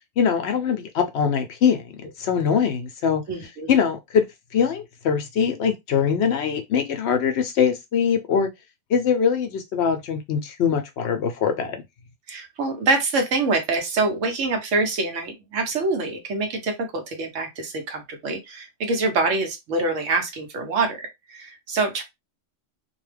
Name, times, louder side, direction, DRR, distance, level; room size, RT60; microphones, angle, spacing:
voice 1, 0.2-3.2 3.7-4.2 4.5-8.5 8.9-11.8, left 7 dB, 65° left, 0.8 m, -22 dB
voice 2, 3.3-3.7 12.3-22.0, right 3 dB, 75° right, 1.1 m, -25 dB
2.6 x 2.2 x 3.2 m
omnidirectional pair, 1.3 m